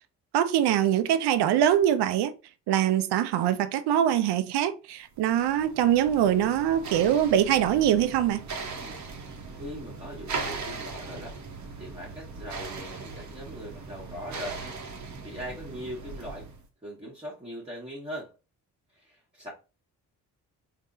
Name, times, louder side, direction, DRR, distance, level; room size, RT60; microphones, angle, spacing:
voice 1, 0.3-2.3 2.7-8.4, right 10 dB, 65° right, 0.6 m, -23 dB
sound 1, 5.2-16.7, right 4 dB, 40° right, 0.9 m, -39 dB
voice 2, 8.7-9.0 9.5-11.4 11.8-14.8 15.2-16.5 16.8-18.3 18.9-19.5, equal, 15° right, 1.5 m, -40 dB
3.5 x 2.8 x 2.6 m
hypercardioid pair, 45°, 44 cm